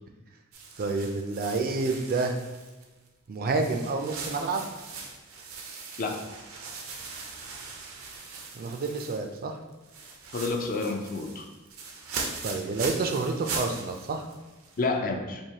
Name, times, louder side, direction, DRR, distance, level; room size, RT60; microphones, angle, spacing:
sound 1, 0.5-3.1 3.5-9.4 9.7-14.9, right 4 dB, 85° right, 0.6 m, -40 dB
voice 1, 0.8-2.4 3.3-4.6 8.5-9.5 12.4-14.3, right 3 dB, 45° right, 5 dB, 0.4 m, -29 dB
voice 2, 10.3-11.5 14.8-15.4, left 3 dB, 45° left, 3 dB, 0.4 m, -29 dB
4.6 x 2.7 x 2.8 m, 1.2 s
head